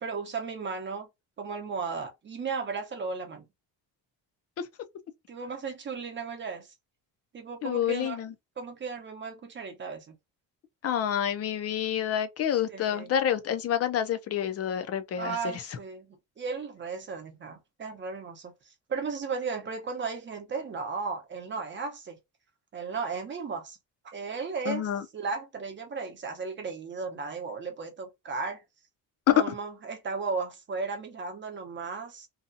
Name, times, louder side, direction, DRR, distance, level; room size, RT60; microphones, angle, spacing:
voice 1, 0.0-1.1 1.4-3.5 5.3-6.7 7.3-8.2 8.6-10.2 12.7-13.1 15.2-22.2 22.7-23.8 24.0-24.9 25.1-28.6 29.3-32.3, right 4 dB, 30° right, 0.7 m, -35 dB
voice 2, 7.6-8.3 10.8-15.8 24.7-25.0 29.3-29.5, left 10 dB, 40° left, 0.5 m, -28 dB
2.7 x 2.3 x 2.6 m
cardioid pair, 135°, 37 cm